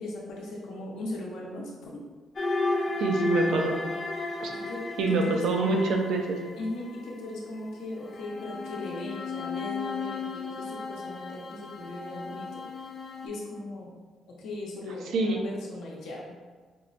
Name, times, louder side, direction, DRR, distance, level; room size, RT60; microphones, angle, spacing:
voice 1, 0.0-2.0 4.5-4.8 5.1-5.9 6.6-12.9 13.2-13.9 14.2-16.4, left 2 dB, 90° left, -3 dB, 0.7 m, -38 dB
sound 1, 2.4-7.1 8.0-13.3, left 3 dB, 40° left, 0.5 m, -33 dB
voice 2, 3.0-3.8 4.4-4.5 5.0-6.4 15.1-15.4, right 3 dB, 80° right, 2 dB, 0.4 m, -26 dB
4.3 x 2.1 x 2.5 m, 1.4 s
cardioid pair, 90°, 0 cm